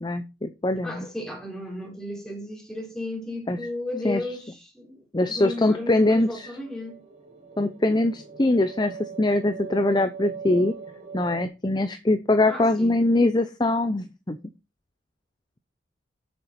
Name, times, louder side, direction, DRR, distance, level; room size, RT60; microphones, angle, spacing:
voice 1, 0.0-1.1 3.5-3.6 4.0-4.2 5.1-6.5 7.6-10.7 11.1-14.4, left 2 dB, 25° left, 0.6 m, -23 dB
voice 2, 0.8-7.0 12.5-13.0, left 1 dB, 5° left, 3.7 m, -34 dB
sound 1, 5.7-11.5, right 6 dB, 40° right, 2.3 m, -40 dB
8.0 x 6.9 x 5.8 m
head